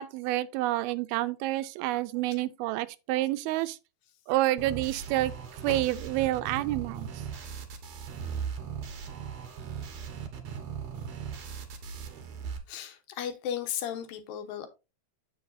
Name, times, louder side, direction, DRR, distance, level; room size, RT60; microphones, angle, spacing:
voice 1, 0.0-3.8 4.3-5.3 5.6-7.1, right 16 dB, 85° right, 2.4 m, -28 dB
sound 1, 4.6-12.6, right 7 dB, 60° right, 2.0 m, -38 dB
voice 2, 12.7-14.7, left 9 dB, 75° left, 2.7 m, -35 dB
7.9 x 7.1 x 2.6 m
omnidirectional pair, 4.4 m